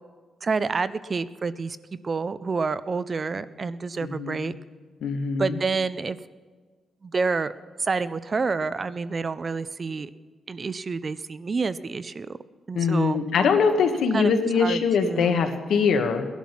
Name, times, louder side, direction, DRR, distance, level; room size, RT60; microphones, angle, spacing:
voice 1, 0.4-1.8 2.0-4.5 5.4-6.2 7.0-7.5 7.8-10.1 10.5-12.4 12.7-13.2 14.1-14.3 14.6-15.4, right 4 dB, 30° right, 15 dB, 0.4 m, -28 dB
voice 2, 4.0-4.5 5.0-5.6 12.7-16.2, left 5 dB, 75° left, 6 dB, 1.4 m, -23 dB
18.5 x 11.5 x 5.9 m, 1.5 s
wide cardioid pair, 175°, 0 cm